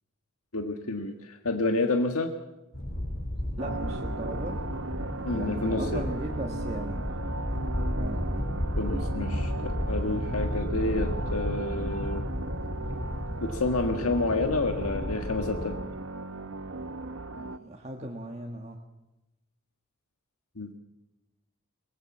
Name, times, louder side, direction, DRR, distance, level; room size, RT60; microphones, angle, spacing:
voice 1, 0.5-2.3 5.2-6.1 8.8-12.2 13.4-15.8 20.6-20.7, left 2 dB, 90° left, 5 dB, 1.6 m, -29 dB
sound 1, 2.7-15.7, left 1 dB, 45° left, 5.0 m, -33 dB
voice 2, 3.6-4.7 5.3-7.0 7.9-8.2 17.3-18.8, right 1 dB, 30° right, 1 dB, 1.5 m, -37 dB
sound 2, 3.6-17.6, right 3 dB, 65° right, 1.0 m, -37 dB
23.5 x 20.5 x 7.4 m, 1.0 s
head